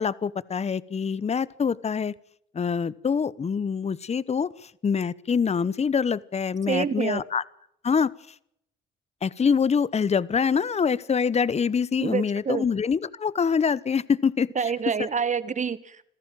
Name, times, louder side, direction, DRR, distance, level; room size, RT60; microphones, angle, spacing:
voice 1, 0.0-2.1 2.5-4.5 4.8-7.4 7.8-8.1 9.2-14.5, left 6 dB, 35° left, 19 dB, 1.0 m, -25 dB
voice 2, 6.7-7.2 12.0-12.6 14.6-16.0, right 6 dB, 40° right, 14 dB, 1.8 m, -27 dB
27.0 x 15.0 x 7.6 m, 0.73 s
cardioid pair, 90°, 20 cm